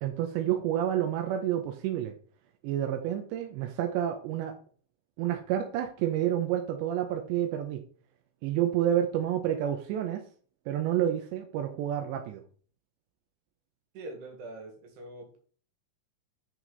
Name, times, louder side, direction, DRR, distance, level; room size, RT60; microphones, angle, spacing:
voice 1, 0.0-2.1 2.6-4.6 5.2-7.8 8.4-10.2 10.7-12.4, right 11 dB, 90° right, 5 dB, 3.0 m, -29 dB
voice 2, 13.9-15.4, right 2 dB, 70° right, 3 dB, 3.9 m, -43 dB
7.5 x 6.0 x 4.0 m, 0.44 s
omnidirectional pair, 5.1 m